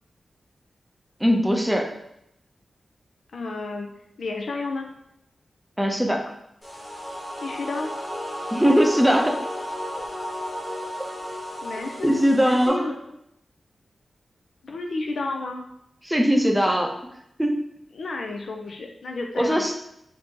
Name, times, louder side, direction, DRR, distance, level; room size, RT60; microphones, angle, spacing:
voice 1, 1.2-1.9 5.8-6.2 8.5-9.4 10.0-10.1 12.0-12.9 16.0-16.9 17.4-17.6 19.4-19.7, equal, 5° right, 2 dB, 0.5 m, -20 dB
voice 2, 3.3-3.9 4.2-4.9 7.4-7.9 11.6-13.2 14.6-15.7 17.9-19.6, left 3 dB, 80° left, 2 dB, 0.3 m, -32 dB
sound 1, 6.6-12.7, equal, 25° left, 1.0 m, -33 dB
2.7 x 2.6 x 3.5 m, 0.78 s
wide cardioid pair, 120°, 0 cm